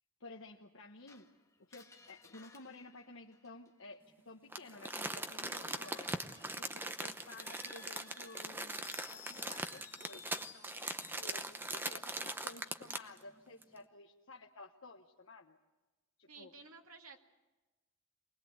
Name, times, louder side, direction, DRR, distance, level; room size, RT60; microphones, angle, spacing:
voice 1, 0.2-1.3 1.6-6.1 6.6-10.7 11.0-15.6 16.2-16.5, left 3 dB, 65° left, 1 dB, 1.1 m, -54 dB
Screech, 1.1-3.9 5.6-11.3, left 6 dB, 15° left, 1.4 m, -57 dB
Crumpling crinkling, 4.5-13.2 13.6-13.7, right 2 dB, 10° right, 0.8 m, -41 dB
voice 2, 16.3-17.2, right 4 dB, 85° right, 3 dB, 2.3 m, -54 dB
24.5 x 20.0 x 8.1 m, 1.1 s
head